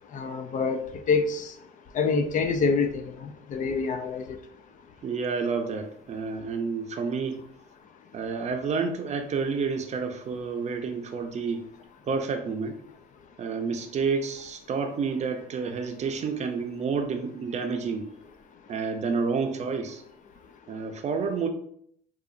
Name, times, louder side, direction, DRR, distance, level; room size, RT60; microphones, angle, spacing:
voice 1, 0.1-0.8 1.1-1.5 1.9-3.0 3.5-4.4, left 4 dB, 50° left, 8 dB, 0.4 m, -25 dB
voice 2, 5.0-7.4 8.1-11.7 12.0-12.8 13.4-18.1 18.7-20.0 20.7-21.5, right 5 dB, 40° right, 5 dB, 0.5 m, -29 dB
4.8 x 2.4 x 2.5 m, 0.67 s
cardioid pair, 110°, 17 cm